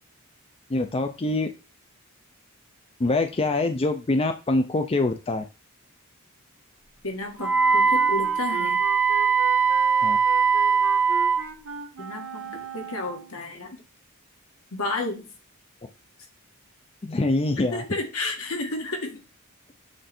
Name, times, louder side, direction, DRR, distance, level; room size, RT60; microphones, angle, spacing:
voice 1, 0.7-1.5 3.0-5.4 10.0-10.2 17.0-17.8, left 2 dB, 25° left, 7 dB, 0.5 m, -24 dB
voice 2, 7.0-8.8 12.0-13.8 14.7-15.3 17.7-19.2, left 2 dB, 75° left, 3 dB, 1.7 m, -32 dB
Wind instrument woodwind instrument, 7.4-11.5, right 5 dB, 5° right, 0.7 m, -21 dB
Wind instrument woodwind instrument 2, 7.4-13.4, right 5 dB, 80° right, 1.1 m, -38 dB
7.8 x 3.2 x 4.3 m, 0.31 s
head